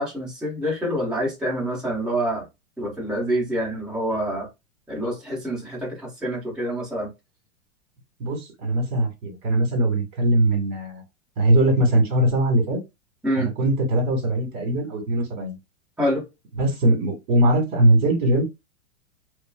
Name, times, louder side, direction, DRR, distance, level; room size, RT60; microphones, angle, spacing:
voice 1, 0.0-2.4 2.8-4.5 4.9-7.1 13.2-13.5 16.0-16.3, equal, ahead, 1.2 m, -26 dB
voice 2, 8.2-11.0 11.4-12.8 13.4-15.6 16.6-18.4, right 1 dB, 35° right, 1.8 m, -21 dB
4.2 x 2.2 x 2.3 m
supercardioid pair, 165°, 41 cm